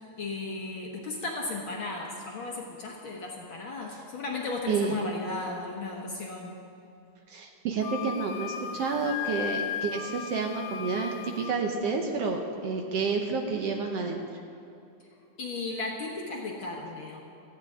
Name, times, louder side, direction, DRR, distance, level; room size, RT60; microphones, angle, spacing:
voice 1, 0.2-6.6 15.4-17.2, left 3 dB, 55° left, -1 dB, 1.7 m, -35 dB
voice 2, 7.3-14.2, right 4 dB, 65° right, 2 dB, 1.8 m, -30 dB
Wind instrument woodwind instrument, 7.8-11.6, left 9 dB, 85° left, 2.0 m, -36 dB
18.0 x 14.0 x 3.7 m, 2.6 s
omnidirectional pair, 3.4 m